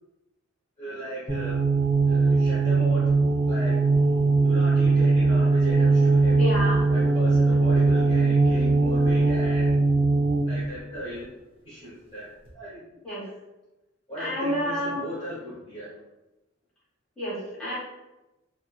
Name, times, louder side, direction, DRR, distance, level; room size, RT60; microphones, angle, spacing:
voice 1, 0.8-1.6 2.0-3.2 3.5-3.7 4.4-6.5 6.9-9.9 10.4-11.3 11.6-12.3 12.5-12.8 14.1-15.9, equal, 25° left, -10 dB, 0.6 m, -36 dB
sound 1, 1.3-10.6, right 3 dB, 25° right, 0.5 m, -20 dB
voice 2, 6.4-6.9 13.0-13.3 14.2-15.0 17.2-17.8, equal, 5° left, -10 dB, 1.0 m, -29 dB
2.9 x 2.0 x 2.2 m, 1.0 s
head